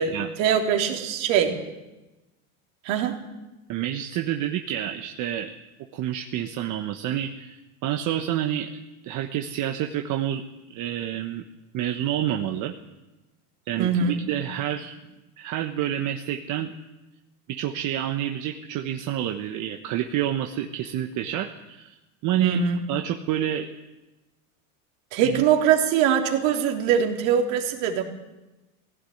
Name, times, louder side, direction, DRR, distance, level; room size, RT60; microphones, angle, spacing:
voice 1, 0.4-1.6 2.8-3.2 13.8-14.2 22.4-22.8 25.1-28.0, right 8 dB, 55° right, 3 dB, 3.5 m, -22 dB
voice 2, 3.7-5.5 5.9-8.7 9.0-10.4 10.7-11.4 11.7-12.7 13.7-14.9 15.4-16.7 17.5-22.0 22.2-22.6 22.9-23.7 25.2-25.4, right 11 dB, 40° right, 4 dB, 1.4 m, -28 dB
18.5 x 16.5 x 9.5 m, 1.0 s
supercardioid pair, 120°, 45 cm